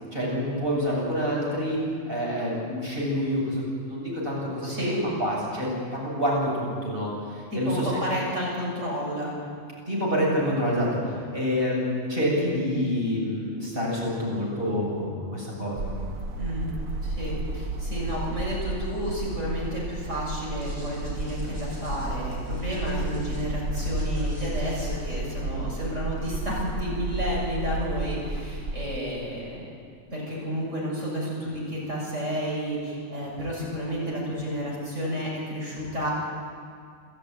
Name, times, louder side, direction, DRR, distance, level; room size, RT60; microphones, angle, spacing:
voice 1, 0.1-1.8 2.1-7.1 7.5-8.0 9.9-10.9 11.3-15.9, equal, 40° right, -4 dB, 8.0 m, -27 dB
voice 2, 4.6-5.0 7.5-9.3 16.4-16.7 17.0-29.6 30.1-36.1, equal, 60° right, -3 dB, 7.4 m, -31 dB
sound 1, 15.8-29.0, right 2 dB, 85° right, 1.5 m, -32 dB
sound 2, 20.5-25.4, left 1 dB, 20° right, 8.0 m, -44 dB
27.0 x 14.5 x 9.5 m, 2.2 s
omnidirectional pair, 1.4 m